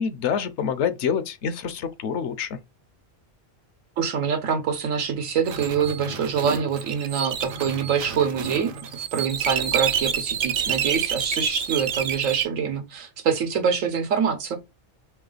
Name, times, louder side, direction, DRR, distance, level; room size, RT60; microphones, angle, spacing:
voice 1, 0.0-2.6, left 7 dB, 70° left, 0.8 m, -26 dB
voice 2, 4.0-14.6, right 7 dB, 85° right, 1.3 m, -25 dB
sound 1, 5.5-12.4, right 8 dB, 60° right, 0.6 m, -28 dB
3.2 x 3.1 x 3.8 m
omnidirectional pair, 1.3 m